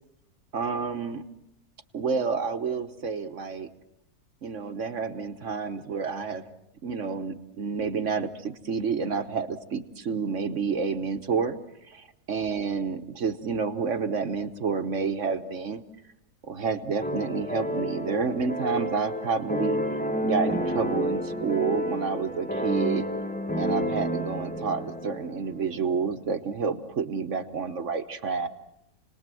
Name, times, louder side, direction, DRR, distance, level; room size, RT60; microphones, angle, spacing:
voice 1, 0.5-1.2 1.9-3.7 4.4-6.4 6.8-15.8 16.4-19.8 20.2-23.1 23.6-28.5, right 5 dB, 55° right, 9 dB, 1.4 m, -29 dB
sound 1, 17.0-26.0, equal, 5° left, 0.9 m, -30 dB
29.5 x 20.0 x 7.7 m, 0.82 s
omnidirectional pair, 1.6 m